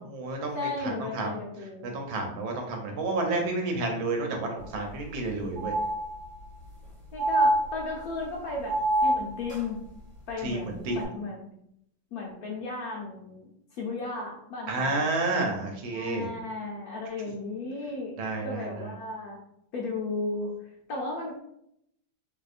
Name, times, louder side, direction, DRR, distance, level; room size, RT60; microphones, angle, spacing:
voice 1, 0.0-1.3 1.9-5.7 10.4-10.6 10.8-11.0 14.7-16.3 18.2-18.9, right 2 dB, 75° right, 2 dB, 1.5 m, -30 dB
voice 2, 0.5-1.9 7.1-9.8 10.3-11.5 12.1-15.0 15.9-19.4 19.7-20.5 20.9-21.3, left 3 dB, 85° left, -2 dB, 0.8 m, -35 dB
sound 1, 4.6-4.7 5.0-5.1 5.6-6.5 7.2-8.2 8.7-9.6 10.9-11.0, right 1 dB, 5° left, 1.0 m, -26 dB
3.9 x 2.7 x 2.5 m, 0.75 s
omnidirectional pair, 2.2 m